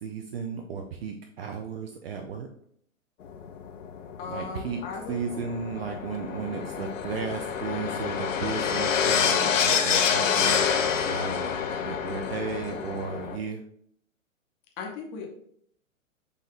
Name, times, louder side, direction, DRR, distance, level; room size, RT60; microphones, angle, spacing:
voice 1, 0.0-2.5 4.3-4.8 5.1-10.6 11.1-11.5 11.8-13.6, right 5 dB, 50° right, 4 dB, 0.6 m, -34 dB
sound 1, 3.2-13.4, left 7 dB, 70° left, 0.6 m, -27 dB
voice 2, 4.2-5.2 14.8-15.3, left 4 dB, 25° left, 1 dB, 0.9 m, -37 dB
6.6 x 2.7 x 2.5 m, 0.64 s
figure-of-eight pair, 120°, 40 cm